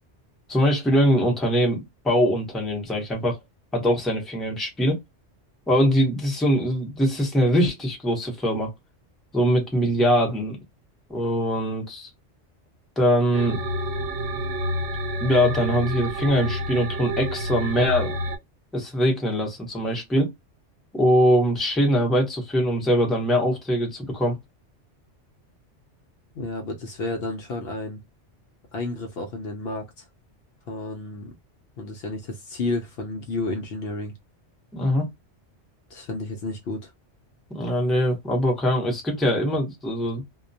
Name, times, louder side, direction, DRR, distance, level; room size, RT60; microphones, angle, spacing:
voice 1, 0.5-3.4 3.7-5.0 5.7-8.7 9.3-10.6 11.1-12.1 13.0-13.6 15.2-18.1 18.7-20.3 20.9-24.4 34.7-35.1 37.5-40.2, equal, ahead, 0.6 m, -22 dB
sound 1, 13.3-18.4, equal, 80° right, 0.9 m, -29 dB
voice 2, 26.3-28.0 28.7-30.1 30.7-31.3 31.8-34.1 35.9-36.9, left 2 dB, 65° left, 0.7 m, -31 dB
2.2 x 2.2 x 2.6 m
omnidirectional pair, 1.2 m